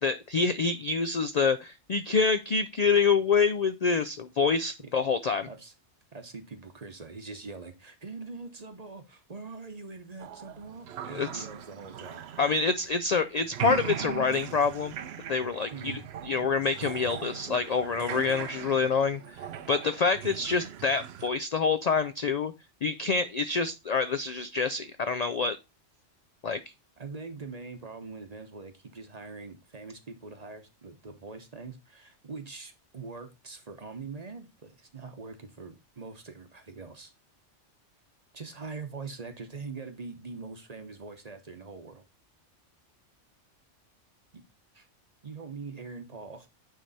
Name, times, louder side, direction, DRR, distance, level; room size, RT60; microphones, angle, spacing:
voice 1, 0.0-5.5 11.1-11.5 12.4-14.9 15.3-19.4 19.7-22.5 22.8-25.6 26.4-26.6, left 5 dB, 60° left, 10 dB, 0.4 m, -27 dB
voice 2, 6.1-12.5 15.7-16.0 27.0-37.1 38.3-42.0 44.3-44.4 44.7-44.9 45.2-46.5, right 4 dB, 35° right, 8 dB, 0.9 m, -43 dB
sound 1, 10.2-13.2 13.4-21.3, right 9 dB, 65° right, 0.8 m, -39 dB
9.3 x 3.4 x 4.0 m, 0.24 s
omnidirectional pair, 1.2 m